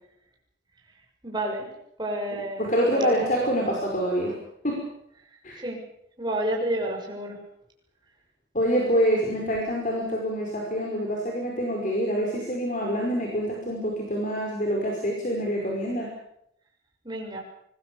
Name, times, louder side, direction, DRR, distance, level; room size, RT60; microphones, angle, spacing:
voice 1, 1.2-1.7 2.0-3.5 5.6-5.8 6.2-7.4 17.0-17.4, right 1 dB, 25° right, 0 dB, 6.7 m, -30 dB
voice 2, 2.6-4.4 4.6-4.8 5.4-5.6 8.5-16.1, equal, 40° left, 0 dB, 5.3 m, -26 dB
25.5 x 21.0 x 7.0 m, 0.75 s
head